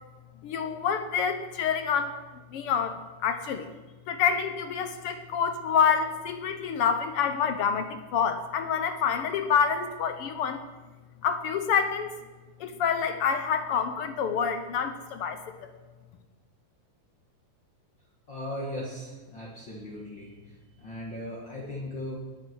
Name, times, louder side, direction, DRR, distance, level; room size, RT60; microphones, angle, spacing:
voice 1, 0.4-2.2 2.5-3.7 4.1-10.6 11.2-12.1 12.6-15.7, left 7 dB, 70° left, 9 dB, 1.3 m, -27 dB
voice 2, 18.3-22.2, left 1 dB, 40° left, -4 dB, 2.6 m, -38 dB
20.0 x 8.7 x 6.3 m, 1.3 s
omnidirectional pair, 3.7 m